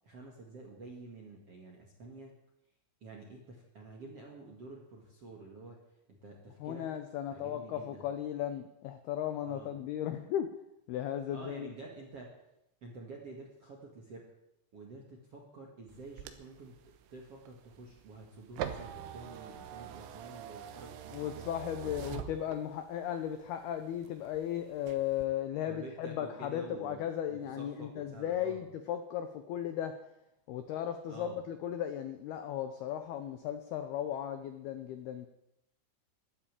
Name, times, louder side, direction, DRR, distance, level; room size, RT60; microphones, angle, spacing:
voice 1, 0.0-2.3 3.0-5.8 6.1-6.9 7.3-8.0 9.5-9.7 11.3-12.3 12.8-14.3 14.7-21.5 21.8-22.1 25.7-27.0 27.3-28.6 31.1-31.4, right 3 dB, 50° right, 0 dB, 1.8 m, -49 dB
voice 2, 6.6-10.5 10.9-11.7 21.1-30.0 30.5-35.3, left 10 dB, 80° left, 8 dB, 2.2 m, -36 dB
sound 1, 15.9-23.0 23.4-24.4 24.8-25.2, right 10 dB, 80° right, 3.6 m, -44 dB
13.0 x 12.0 x 8.9 m, 0.84 s
omnidirectional pair, 5.7 m